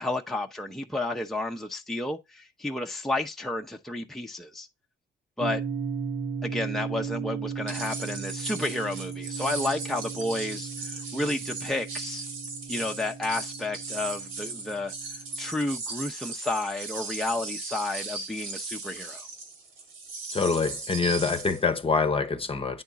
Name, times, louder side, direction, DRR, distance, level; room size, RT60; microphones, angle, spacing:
voice 1, 0.0-4.7 5.4-5.6 6.4-12.2 12.7-14.9 15.4-19.3, left 2 dB, ahead, 0.8 m, -31 dB
sound 1, 5.4-15.6, right 6 dB, 70° right, 1.1 m, -36 dB
sound 2, 7.7-21.6, right 4 dB, 90° right, 2.4 m, -37 dB
voice 2, 20.3-22.8, left 4 dB, 30° left, 0.9 m, -25 dB
9.3 x 3.6 x 4.0 m
cardioid pair, 90°, 20 cm